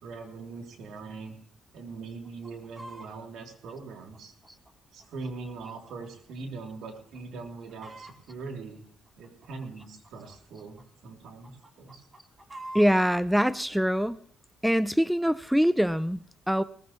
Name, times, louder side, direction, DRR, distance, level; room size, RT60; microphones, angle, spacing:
voice 1, 0.0-1.3 1.7-4.3 4.9-8.8 9.2-12.0, right 4 dB, 80° right, 2 dB, 3.3 m, -41 dB
Chicken rooster, 2.2-3.1 3.7-6.0 6.3-6.4 6.9-7.2 7.5-8.4 9.0-10.8 11.3-13.1 13.7-13.8, right 1 dB, 25° right, 2.7 m, -46 dB
voice 2, 12.7-14.2 14.6-16.6, equal, ahead, 15 dB, 0.5 m, -24 dB
19.0 x 15.0 x 3.2 m, 0.64 s
cardioid pair, 90°, 0 cm